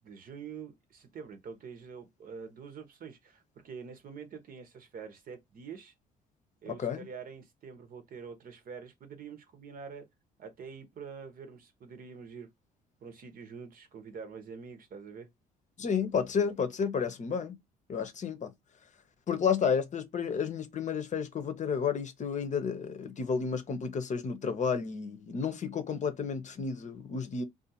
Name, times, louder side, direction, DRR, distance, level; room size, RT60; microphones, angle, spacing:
voice 1, 0.0-5.9 6.6-10.1 10.4-12.5 13.0-15.3, right 6 dB, 55° right, 0.9 m, -46 dB
voice 2, 15.8-17.5 17.9-18.5 19.3-27.4, left 6 dB, 40° left, 0.7 m, -31 dB
2.5 x 2.4 x 2.7 m
supercardioid pair, 70°, 18 cm